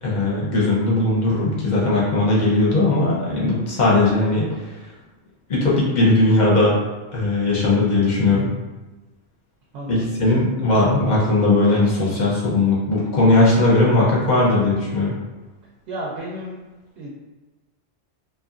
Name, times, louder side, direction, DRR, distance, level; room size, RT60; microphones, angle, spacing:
voice 1, 0.0-4.9 5.5-6.8 7.1-8.5 9.9-15.1, left 2 dB, 45° left, -6 dB, 0.7 m, -18 dB
voice 2, 9.7-10.1 15.9-16.6 17.0-17.1, right 1 dB, 70° right, -4 dB, 0.8 m, -32 dB
2.7 x 2.3 x 2.4 m, 1.2 s
omnidirectional pair, 1.2 m